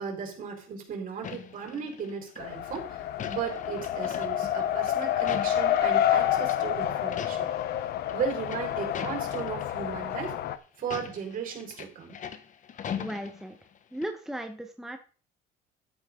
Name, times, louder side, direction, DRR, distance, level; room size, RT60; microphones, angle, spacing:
voice 1, 0.0-3.0 3.2-7.5 8.1-10.3 10.8-12.2, right 7 dB, 55° right, 1 dB, 4.7 m, -36 dB
sound 1, 1.2-2.4 2.7-6.1 6.4-6.6 7.0-7.6 7.9-9.7 10.1-10.3 10.8-13.8 14.0-14.1, left 8 dB, 50° left, 1.2 m, -40 dB
Race car auto racing, 2.4-10.6, left 11 dB, 75° left, 0.9 m, -28 dB
voice 2, 13.0-13.6 13.9-15.0, right 1 dB, ahead, 5 dB, 1.1 m, -36 dB
13.0 x 9.4 x 3.8 m, 0.38 s
cardioid pair, 110°, 17 cm